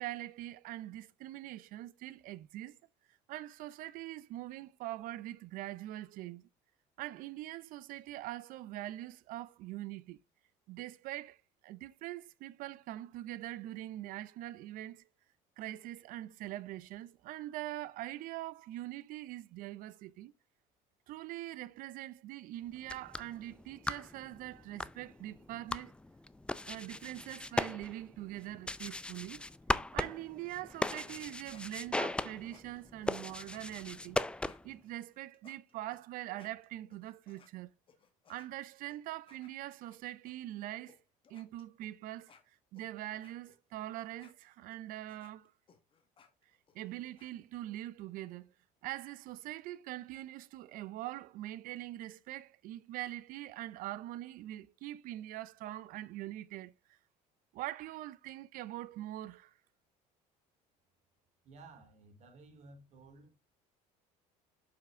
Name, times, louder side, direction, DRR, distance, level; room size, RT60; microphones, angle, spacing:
voice 1, 0.0-2.8 3.3-6.5 7.0-10.2 10.7-15.1 15.6-20.3 21.1-25.9 26.7-29.4 29.9-34.2 34.6-37.7 38.3-41.0 41.3-42.3 42.7-45.5 46.7-48.5 48.8-57.0 57.5-59.5, right 15 dB, 65° right, 0.6 m, -43 dB
sound 1, 22.7-34.8, left 2 dB, 5° left, 0.4 m, -39 dB
sound 2, 31.4-37.5 37.9-40.3 40.9-41.0 41.2-47.3, left 6 dB, 35° left, 1.5 m, -64 dB
voice 2, 61.4-63.4, right 3 dB, 50° right, 2.7 m, -55 dB
7.1 x 5.7 x 3.6 m
cardioid pair, 115°, 15 cm